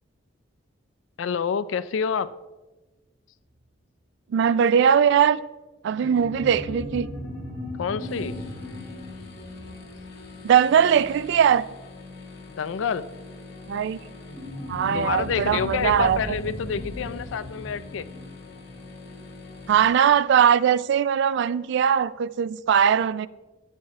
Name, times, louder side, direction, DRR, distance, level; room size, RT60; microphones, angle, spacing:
voice 1, 1.2-2.3 7.8-8.4 12.5-13.1 14.9-18.1, left 6 dB, 85° left, 0.4 m, -28 dB
voice 2, 4.3-5.4 5.8-7.1 10.4-11.7 13.7-14.0 14.7-16.4 19.7-23.3, right 8 dB, 65° right, 0.3 m, -20 dB
sound 1, 5.9-10.9 14.3-19.2, left 1 dB, 15° left, 1.9 m, -37 dB
sound 2, 8.0-19.9, left 3 dB, 60° left, 1.5 m, -44 dB
11.5 x 8.6 x 2.8 m
head